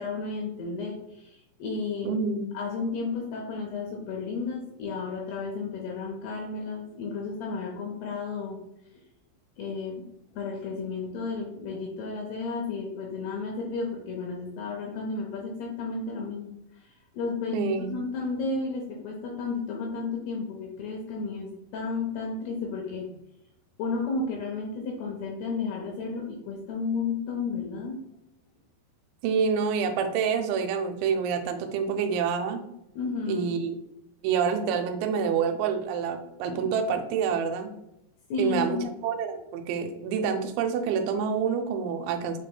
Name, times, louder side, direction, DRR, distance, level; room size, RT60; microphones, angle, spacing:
voice 1, 0.0-2.2 2.5-8.6 9.6-10.1 10.3-23.1 23.8-28.0 33.0-33.5 36.5-36.7 38.3-39.0, left 4 dB, 80° left, 0 dB, 2.4 m, -33 dB
voice 2, 2.0-2.5 17.5-17.9 29.2-32.6 33.3-33.8 34.2-37.7 38.4-42.4, right 6 dB, 85° right, 6 dB, 2.9 m, -27 dB
7.4 x 3.2 x 2.2 m, 0.84 s
omnidirectional pair, 5.2 m